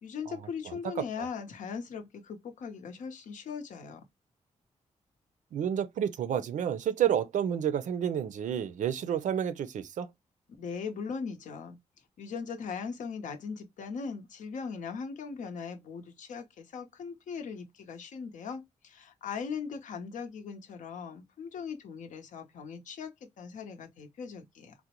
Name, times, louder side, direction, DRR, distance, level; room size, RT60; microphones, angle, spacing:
voice 1, 0.0-4.0 10.6-11.8 12.2-24.7, left 6 dB, 85° left, 0.7 m, -39 dB
voice 2, 5.5-10.1, right 9 dB, 80° right, 0.4 m, -30 dB
3.7 x 2.1 x 2.8 m
wide cardioid pair, 115°, 13 cm